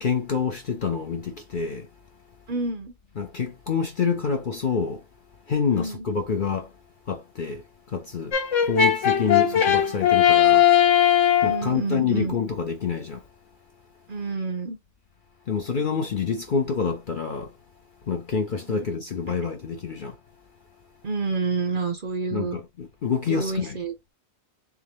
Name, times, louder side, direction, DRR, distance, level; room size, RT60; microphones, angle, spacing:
voice 1, 0.0-1.9 3.2-5.0 5.5-6.7 7.1-8.4 8.6-10.7 11.4-13.2 15.5-17.5 18.1-20.2 22.3-23.8, left 6 dB, 50° left, 0.6 m, -27 dB
voice 2, 2.5-2.9 5.7-6.1 9.3-9.7 11.4-12.4 14.1-14.8 18.7-18.9 21.0-22.6 23.3-23.9, right 4 dB, 50° right, 0.8 m, -29 dB
Brass instrument, 8.3-11.6, left 10 dB, 70° left, 1.3 m, -18 dB
3.7 x 3.6 x 3.0 m
omnidirectional pair, 1.4 m